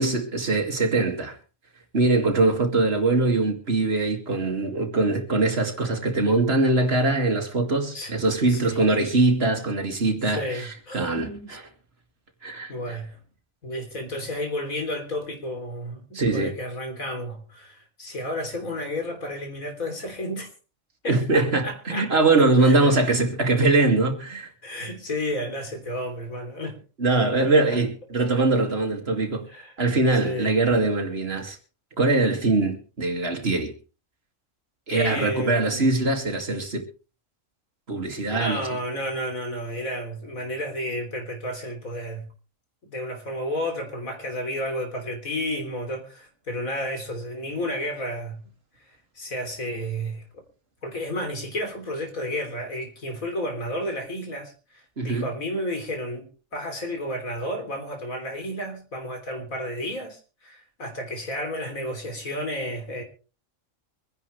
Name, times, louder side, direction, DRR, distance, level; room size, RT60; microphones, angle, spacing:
voice 1, 0.0-1.4 1.9-10.7 10.9-11.7 12.4-13.0 16.1-16.5 21.1-24.5 27.0-29.5 29.8-31.6 32.0-33.7 34.9-36.8 37.9-38.6 55.0-55.3, right 2 dB, 45° right, 2.6 m, -22 dB
voice 2, 10.3-11.5 12.7-13.2 13.6-20.5 21.0-22.1 22.6-23.0 24.6-26.8 27.4-27.8 29.5-29.7 30.2-30.5 34.9-35.9 38.3-42.3 42.8-48.4 49.1-50.2 50.8-63.0, left 1 dB, 75° left, 3.8 m, -32 dB
24.5 x 10.5 x 3.3 m
omnidirectional pair, 1.4 m